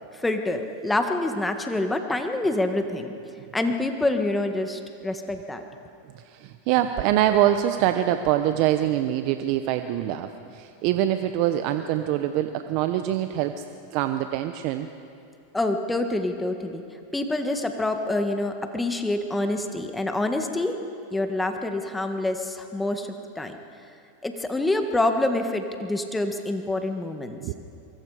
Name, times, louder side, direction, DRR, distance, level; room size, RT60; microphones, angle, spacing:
voice 1, 0.1-3.1 3.5-5.6 15.5-16.8 17.1-20.8 21.1-23.1 23.4-23.6 24.2-27.4, left 2 dB, 10° left, 5 dB, 1.6 m, -26 dB
voice 2, 6.2-13.6 13.9-14.9 27.4-27.8, right 12 dB, 55° right, 8 dB, 0.9 m, -24 dB
25.0 x 23.5 x 5.0 m, 2.5 s
hypercardioid pair, 105°, 0 cm